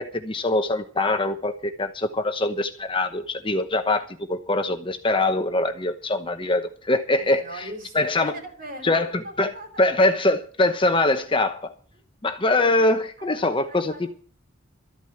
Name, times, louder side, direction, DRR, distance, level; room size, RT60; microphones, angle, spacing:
voice 1, 0.0-7.4 7.9-8.3 8.8-9.1 9.4-9.5 9.8-11.7 12.2-14.1, left 2 dB, 25° left, 1.0 m, -23 dB
voice 2, 7.1-9.8 11.9-12.0 12.5-12.6 13.2-14.1, right 1 dB, 45° right, 3.8 m, -40 dB
13.5 x 9.1 x 7.7 m
head